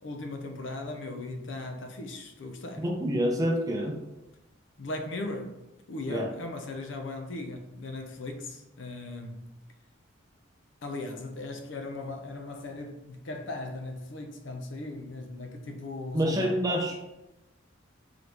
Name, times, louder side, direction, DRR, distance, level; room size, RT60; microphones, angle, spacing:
voice 1, 0.0-2.9 4.8-5.6 5.9-9.5 10.8-16.6, left 2 dB, 65° left, 0.6 m, -38 dB
voice 2, 2.8-4.0 6.1-6.3 16.1-17.0, equal, 20° right, 0.6 m, -27 dB
3.9 x 3.1 x 3.3 m
head